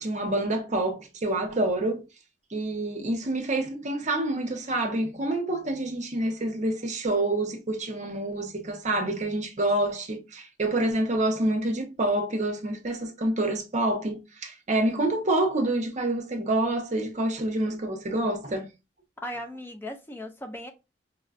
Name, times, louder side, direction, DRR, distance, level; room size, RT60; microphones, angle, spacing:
voice 1, 0.0-2.0 2.5-18.7, right 1 dB, 40° right, 0.7 m, -27 dB
voice 2, 19.2-20.7, left 1 dB, 15° left, 0.4 m, -37 dB
5.2 x 2.2 x 2.4 m
head